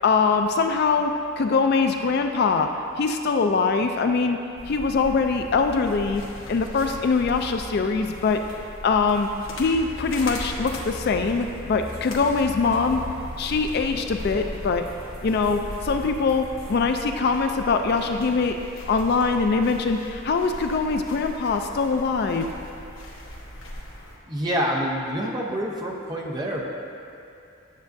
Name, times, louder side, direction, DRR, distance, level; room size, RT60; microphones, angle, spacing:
voice 1, 0.0-4.4 4.7-6.2 6.5-8.4 8.8-9.3 9.6-13.0 13.4-14.9 15.2-18.6 18.9-22.5, left 4 dB, 50° left, 6 dB, 0.3 m, -23 dB
sound 1, 4.6-24.2, left 1 dB, 70° left, 1.2 m, -38 dB
sound 2, 9.4-16.7, equal, 80° right, 1.1 m, -44 dB
voice 2, 24.3-26.6, equal, 20° right, -2 dB, 0.7 m, -27 dB
9.4 x 7.2 x 2.6 m, 2.7 s
head